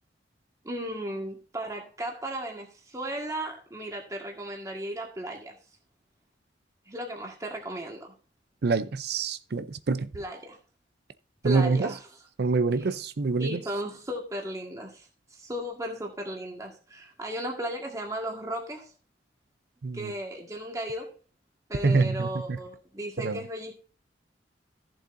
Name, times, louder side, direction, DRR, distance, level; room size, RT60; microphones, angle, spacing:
voice 1, 0.6-5.6 6.9-8.1 10.1-10.6 11.4-12.0 12.8-12.9 13.4-18.9 19.9-21.1 21.7-23.7, right 1 dB, 20° right, 1.7 m, -35 dB
voice 2, 8.6-10.1 11.4-11.9 12.4-13.6 19.8-20.1 21.8-22.6 23.2-23.4, right 4 dB, 60° right, 0.6 m, -26 dB
14.5 x 7.4 x 2.6 m
head